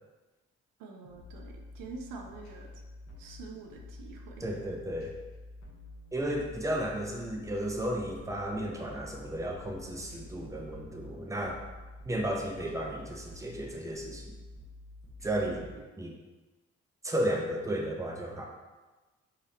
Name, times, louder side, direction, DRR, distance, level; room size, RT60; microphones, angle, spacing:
voice 1, 0.8-2.7 3.2-4.4 15.5-15.9, right 3 dB, 75° right, 2 dB, 0.6 m, -46 dB
sound 1, 1.1-15.7, left 2 dB, 55° left, 1.2 m, -49 dB
voice 2, 4.4-5.1 6.1-11.6 12.0-14.4 15.2-16.2 17.0-18.4, right 1 dB, 10° right, 0 dB, 0.8 m, -34 dB
4.9 x 2.9 x 2.9 m, 1.2 s
hypercardioid pair, 45°, 34 cm